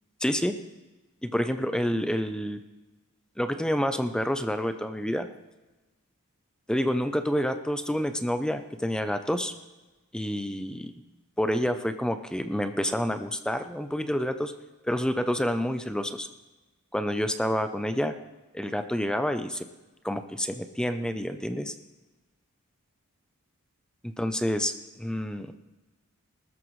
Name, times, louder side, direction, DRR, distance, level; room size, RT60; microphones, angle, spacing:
voice 1, 0.2-0.5 1.2-2.6 3.4-5.3 6.7-9.5 10.1-10.9 11.4-14.5 14.8-16.3 16.9-18.1 18.5-19.7 20.0-21.7 24.0-25.5, equal, 5° left, 9 dB, 0.5 m, -28 dB
19.5 x 13.5 x 3.1 m, 1.1 s
head